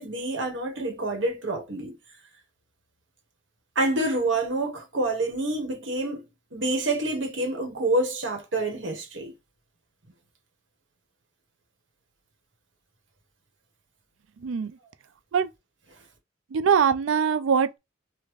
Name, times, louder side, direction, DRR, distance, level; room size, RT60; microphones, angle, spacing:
voice 1, 0.0-2.0 3.7-6.2 6.5-9.3, right 2 dB, 70° right, 1.2 m, -27 dB
voice 2, 16.5-17.8, right 6 dB, 85° right, 0.4 m, -22 dB
3.7 x 2.2 x 3.1 m
head